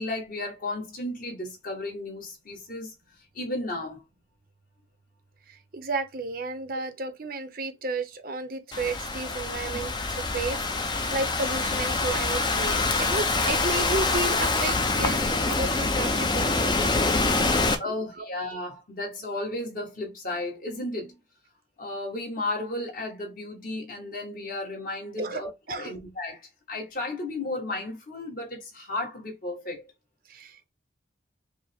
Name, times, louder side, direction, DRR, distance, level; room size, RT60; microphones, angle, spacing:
voice 1, 0.0-2.9 3.3-4.0 17.8-21.2 21.8-29.9, left 2 dB, 45° left, 1.3 m, -34 dB
voice 2, 5.5-9.9 10.3-17.5 18.2-18.3 25.2-25.4 25.7-25.9 30.3-30.6, right 3 dB, 50° right, 0.6 m, -33 dB
Thunderstorm / Rain, 8.7-17.7, left 3 dB, 25° left, 0.5 m, -25 dB
5.2 x 2.0 x 3.4 m
head